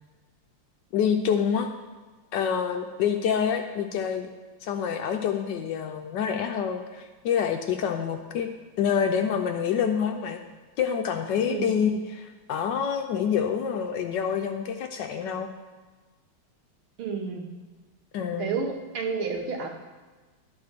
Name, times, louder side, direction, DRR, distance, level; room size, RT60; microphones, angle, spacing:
voice 1, 0.9-1.7 2.3-4.3 4.6-8.5 8.8-10.4 10.8-15.5 18.1-18.5, left 7 dB, 70° left, 5 dB, 1.1 m, -27 dB
voice 2, 11.5-11.8 17.0-17.5 18.4-19.7, right 5 dB, 85° right, 2 dB, 2.0 m, -30 dB
10.5 x 4.2 x 6.6 m, 1.3 s
omnidirectional pair, 2.3 m